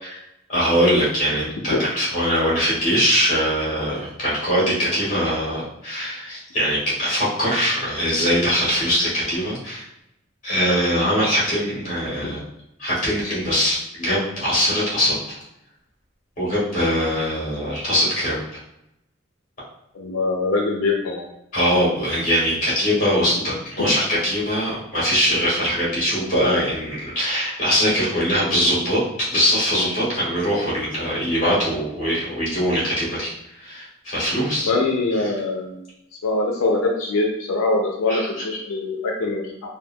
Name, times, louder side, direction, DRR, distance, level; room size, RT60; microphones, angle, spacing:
voice 1, 0.5-9.9 10.4-12.4 12.8-15.4 16.4-18.4 21.5-29.0 29.3-33.3 33.6-34.7 35.2-35.3 38.1-38.3, equal, 40° left, -7 dB, 1.5 m, -22 dB
voice 2, 19.9-21.3 34.7-35.8 36.2-39.4, left 3 dB, 90° left, -1 dB, 0.5 m, -23 dB
3.5 x 2.2 x 2.2 m, 0.83 s
head